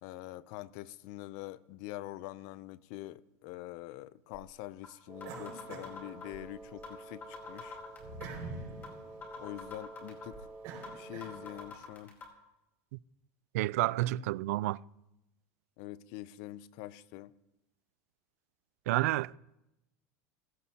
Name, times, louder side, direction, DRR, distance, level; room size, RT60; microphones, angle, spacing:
voice 1, 0.0-7.8 9.4-10.5 10.9-12.2 14.0-14.3 15.8-17.3, left 15 dB, 50° left, 0.5 m, -45 dB
sound 1, 4.3-4.4 4.8-4.9 5.2-6.4 6.8-7.0 7.2-8.4 8.8-8.9 9.2-10.4 10.8-10.9 11.2-12.2, left 5 dB, 25° left, 4.1 m, -45 dB
Wind instrument woodwind instrument, 5.1-11.8, right 2 dB, 10° right, 1.1 m, -50 dB
sound 2, 5.2-6.8 7.2-11.7, right 3 dB, 50° right, 5.6 m, -47 dB
voice 2, 13.5-14.8 18.9-19.4, right 17 dB, 80° right, 0.3 m, -30 dB
17.0 x 16.5 x 2.9 m
supercardioid pair, 165°, 8 cm